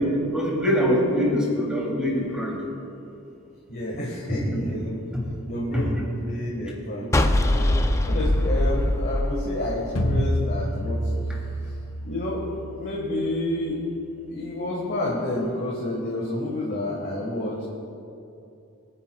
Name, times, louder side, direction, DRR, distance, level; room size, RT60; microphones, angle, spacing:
voice 1, 0.0-2.6 5.1-5.2 5.7-5.8, equal, 5° right, -4 dB, 3.1 m, -23 dB
voice 2, 3.7-5.1 5.5-7.7 8.1-11.0 12.0-12.4 12.8-13.8 14.2-17.6, left 1 dB, 50° left, -4 dB, 1.7 m, -29 dB
sound 1, 7.1-10.4, left 1 dB, 15° left, 0.4 m, -22 dB
sound 2, 10.0-15.0, equal, 70° left, 1.3 m, -30 dB
23.5 x 10.5 x 2.4 m, 2.7 s
head